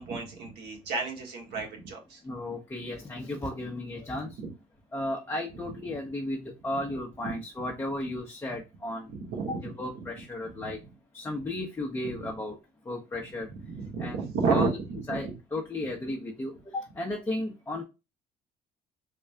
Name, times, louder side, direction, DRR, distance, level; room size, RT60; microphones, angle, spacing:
voice 1, 0.0-2.2 6.7-6.8 7.2-7.4 9.1-10.7 12.0-12.3 13.6-15.3, right 4 dB, 75° right, 0 dB, 1.5 m, -32 dB
voice 2, 2.2-4.4 4.9-9.1 9.5-10.8 11.1-12.6 12.9-13.5 14.0-14.7 15.1-17.8, left 1 dB, 15° left, 0 dB, 0.7 m, -34 dB
3.7 x 2.3 x 3.3 m, 0.26 s
cardioid pair, 110°, 17 cm